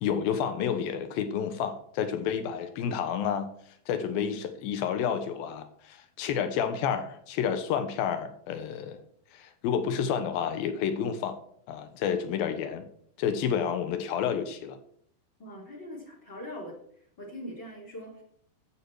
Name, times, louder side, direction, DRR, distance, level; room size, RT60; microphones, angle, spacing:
voice 1, 0.0-3.5 3.9-9.0 9.3-11.4 11.7-12.9 13.2-14.8, left 8 dB, 70° left, 8 dB, 2.8 m, -30 dB
voice 2, 15.4-16.8 17.2-18.2, equal, 30° left, 1 dB, 3.2 m, -41 dB
13.0 x 8.5 x 4.8 m, 0.64 s
omnidirectional pair, 4.7 m